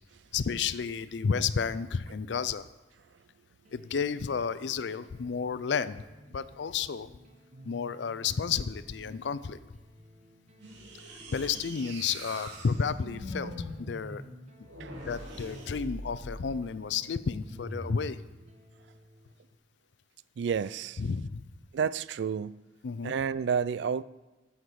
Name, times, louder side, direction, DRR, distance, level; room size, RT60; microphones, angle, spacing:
voice 1, 0.3-2.7 3.7-6.0 6.3-7.1 7.6-9.6 11.3-14.2 15.0-18.2 21.0-21.4 22.8-23.1, left 6 dB, 75° left, 0.4 m, -31 dB
sound 1, 3.6-19.6, equal, 40° right, 1.2 m, -56 dB
sound 2, 10.6-16.5 17.4-18.1, right 1 dB, 90° right, 2.2 m, -42 dB
voice 2, 20.4-21.0 21.7-22.6 23.0-24.0, right 6 dB, 70° right, 0.3 m, -30 dB
14.5 x 5.8 x 4.8 m
head